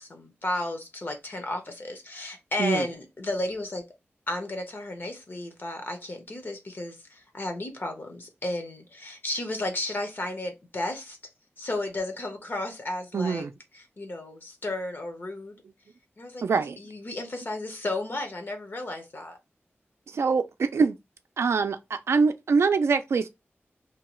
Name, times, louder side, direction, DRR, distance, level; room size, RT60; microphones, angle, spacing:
voice 1, 0.0-3.9 4.3-11.2 11.6-13.4 13.7-15.6 16.2-19.4, left 2 dB, 50° left, 0.8 m, -33 dB
voice 2, 13.1-13.5 16.4-16.8 20.1-21.0 21.4-23.3, right 5 dB, 80° right, 0.4 m, -24 dB
2.8 x 2.3 x 3.0 m
wide cardioid pair, 90°, 5 cm